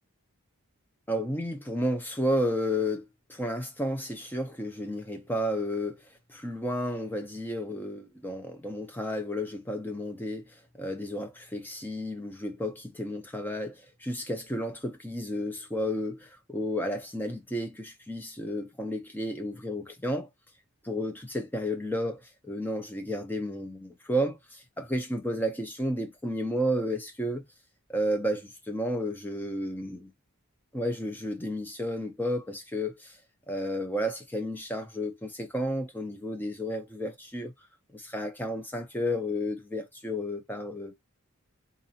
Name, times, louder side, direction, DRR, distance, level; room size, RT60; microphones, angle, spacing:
voice 1, 1.1-20.3 20.8-27.5 27.9-30.1 30.7-33.2 33.5-37.5 37.9-40.9, equal, 10° left, 0.8 m, -32 dB
4.0 x 2.7 x 2.8 m
head